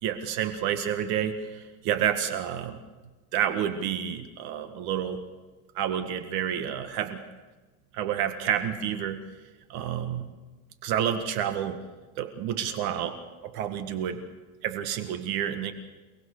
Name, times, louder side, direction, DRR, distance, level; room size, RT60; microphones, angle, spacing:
voice 1, 0.0-2.8 3.3-5.2 5.8-7.2 7.9-9.2 9.7-10.3 10.8-11.8 12.2-13.2 13.4-14.2 14.6-15.7, right 9 dB, 55° right, 8 dB, 1.9 m, -29 dB
29.0 x 19.5 x 6.7 m, 1.2 s
supercardioid pair, 140°, 44 cm